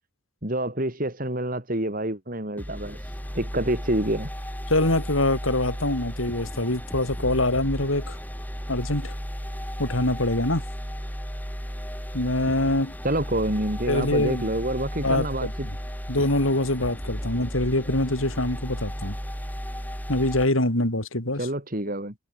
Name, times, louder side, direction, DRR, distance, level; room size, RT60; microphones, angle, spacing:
voice 1, 0.4-4.3 13.0-15.7 21.4-22.1, right 1 dB, 45° right, 4.3 m, -27 dB
sound 1, 2.6-20.5, equal, 10° left, 7.6 m, -34 dB
voice 2, 4.7-8.2 8.7-9.1 9.8-10.6 12.1-12.9 13.9-14.5 15.0-15.5 16.1-19.2 20.1-21.4, left 1 dB, 85° left, 6.0 m, -24 dB
head